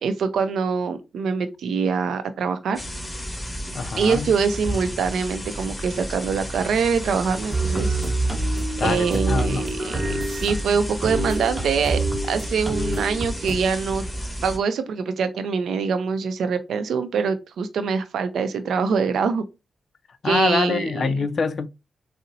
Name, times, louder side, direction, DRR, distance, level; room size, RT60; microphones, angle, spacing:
voice 1, 0.0-2.8 4.0-8.0 8.8-14.0 14.4-19.4 20.2-21.2, right 5 dB, 85° right, 0.4 m, -24 dB
sound 1, 2.7-14.6, equal, 15° left, 1.4 m, -33 dB
voice 2, 3.7-4.3 8.8-9.7 20.2-21.7, left 5 dB, 60° left, 0.3 m, -25 dB
sound 2, 7.5-13.6, right 2 dB, 30° right, 0.9 m, -26 dB
3.9 x 2.0 x 2.6 m
cardioid pair, 60°, 0 cm